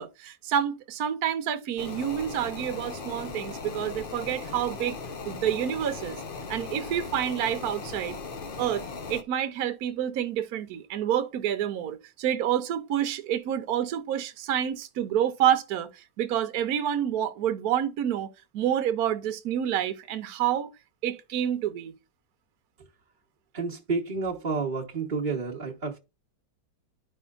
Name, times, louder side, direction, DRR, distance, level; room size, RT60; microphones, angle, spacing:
voice 1, 0.0-5.0 5.2-6.2 6.5-8.2 8.6-20.7 21.0-21.9, right 10 dB, 65° right, 1.2 m, -28 dB
sound 1, 1.8-9.2, left 4 dB, 50° left, 0.6 m, -38 dB
voice 2, 23.5-26.0, right 4 dB, 30° right, 1.0 m, -30 dB
11.5 x 5.5 x 2.4 m
omnidirectional pair, 2.0 m